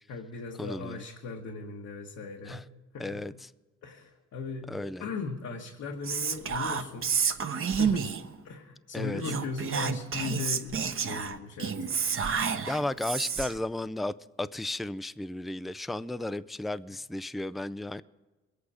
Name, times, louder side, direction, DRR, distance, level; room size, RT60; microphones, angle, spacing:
voice 1, 0.1-2.7 2.9-3.2 3.8-4.7 5.0-7.1 7.7-8.1 8.4-12.0, left 4 dB, 75° left, 0 dB, 1.4 m, -38 dB
voice 2, 0.6-1.0 2.5-2.6 3.0-3.3 4.7-5.0 8.9-9.2 12.6-18.0, left 2 dB, ahead, 15 dB, 0.3 m, -34 dB
Whispering, 6.0-8.3 9.2-13.6, right 6 dB, 45° right, 1.0 m, -30 dB
22.0 x 8.3 x 4.9 m, 1.2 s
cardioid pair, 75°, 29 cm